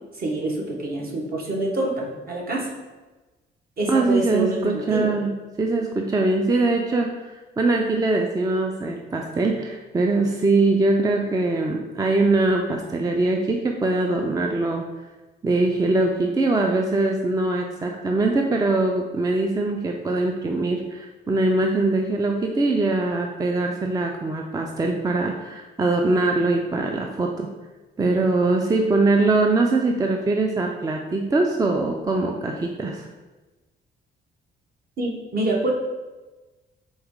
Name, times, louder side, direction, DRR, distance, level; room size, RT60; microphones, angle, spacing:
voice 1, 0.1-2.7 3.8-5.1 35.0-35.7, right 2 dB, 50° right, -1 dB, 1.1 m, -26 dB
voice 2, 3.9-14.8 15.4-27.5 28.0-33.1, right 2 dB, 20° right, 2 dB, 0.4 m, -22 dB
4.7 x 3.1 x 3.6 m, 1.2 s
cardioid pair, 90°, 20 cm